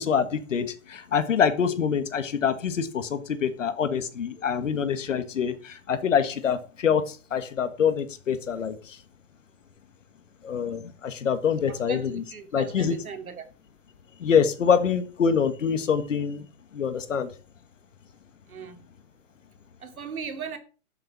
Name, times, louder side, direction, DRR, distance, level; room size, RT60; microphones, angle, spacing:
voice 1, 0.0-9.0 10.4-12.2 12.5-12.9 14.2-16.4 16.7-17.3, left 7 dB, 60° left, 1.6 m, -25 dB
voice 2, 11.6-13.5 18.5-18.8 19.8-20.6, right 6 dB, 75° right, 2.9 m, -38 dB
12.0 x 7.0 x 6.1 m
hypercardioid pair, 165°, 43 cm